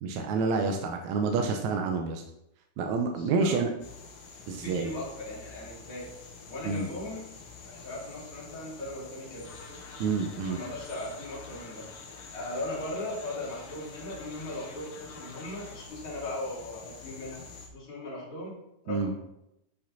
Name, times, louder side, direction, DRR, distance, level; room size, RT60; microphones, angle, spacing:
voice 1, 0.0-2.2 2.8-3.7 4.5-4.9 6.7-6.9 10.0-10.6 18.9-19.1, right 4 dB, 75° right, 4 dB, 2.0 m, -28 dB
voice 2, 3.1-3.6 4.5-6.1 6.5-7.2 7.6-9.5 10.4-11.9 12.3-17.4 17.7-18.6 18.8-19.2, left 1 dB, 40° left, -7 dB, 3.7 m, -38 dB
sound 1, 3.8-17.7, left 4 dB, 80° left, 3.1 m, -48 dB
sound 2, 9.4-15.9, left 4 dB, 60° left, 1.8 m, -50 dB
10.0 x 5.5 x 4.1 m, 0.83 s
omnidirectional pair, 3.6 m